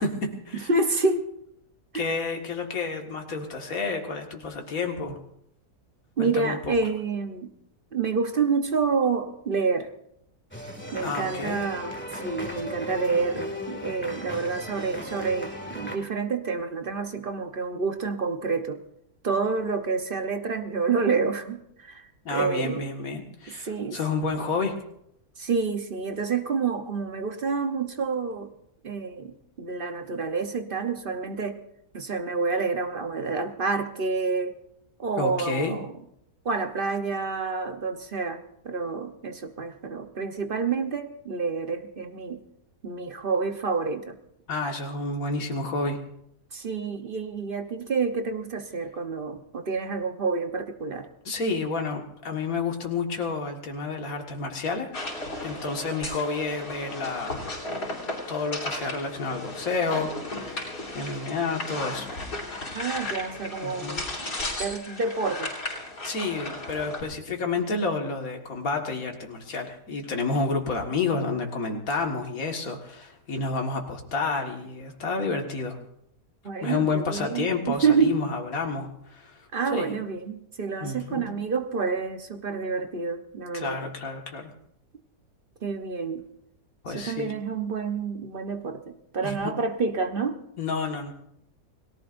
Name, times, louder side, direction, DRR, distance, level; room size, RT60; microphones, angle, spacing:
voice 1, 0.0-0.7 1.9-5.2 6.2-6.8 11.0-11.6 22.3-24.8 35.2-35.8 44.5-46.0 51.3-54.9 55.4-57.4 58.3-62.1 63.6-64.0 66.0-75.8 76.6-79.9 80.8-81.3 83.5-84.5 86.8-87.3 89.2-89.5 90.6-91.1, left 3 dB, 60° left, 2 dB, 2.2 m, -30 dB
voice 2, 0.7-1.3 1.9-2.2 6.2-7.5 7.9-9.9 10.9-18.8 19.2-22.9 23.5-24.0 25.4-28.5 28.8-31.6 31.9-34.6 35.0-35.9 36.4-42.4 42.8-44.2 46.5-51.1 62.7-65.5 76.4-78.2 79.5-83.8 85.6-86.2 86.9-90.4, right 4 dB, 40° right, 7 dB, 1.0 m, -28 dB
sound 1, 10.5-16.0, equal, 5° left, 2.0 m, -36 dB
sound 2, 54.9-67.0, left 2 dB, 85° left, 4.4 m, -35 dB
29.5 x 18.0 x 2.6 m, 0.76 s
omnidirectional pair, 1.7 m